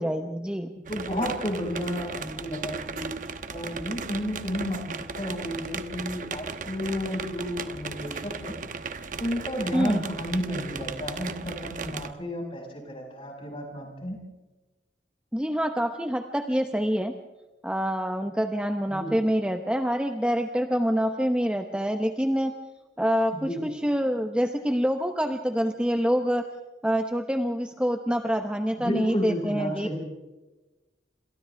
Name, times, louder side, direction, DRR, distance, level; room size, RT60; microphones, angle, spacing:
voice 1, 0.0-0.7 9.7-10.1 15.3-17.1 17.6-22.6 23.0-26.4 26.8-30.0, equal, 5° right, 5 dB, 0.9 m, -26 dB
voice 2, 0.9-3.1 3.5-8.5 9.2-14.2 18.9-19.2 23.3-23.6 28.8-30.0, equal, 30° left, 1 dB, 6.2 m, -32 dB
sound 1, 0.9-12.1, right 4 dB, 50° right, 1.1 m, -36 dB
28.5 x 26.0 x 3.5 m, 1.1 s
head